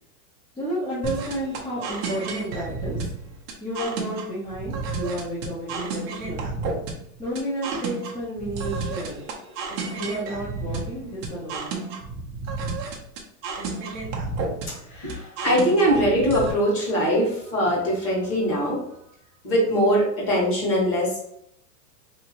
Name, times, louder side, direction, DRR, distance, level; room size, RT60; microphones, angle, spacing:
voice 1, 0.6-3.0 3.6-6.5 7.2-9.2 9.9-11.8, right 1 dB, 10° left, -9 dB, 0.7 m, -31 dB
sound 1, 1.0-16.5, right 4 dB, 30° right, 0.6 m, -31 dB
voice 2, 14.7-18.8 19.4-21.2, equal, 30° left, -4 dB, 1.5 m, -22 dB
3.3 x 2.9 x 2.9 m, 0.73 s
supercardioid pair, 145°, 48 cm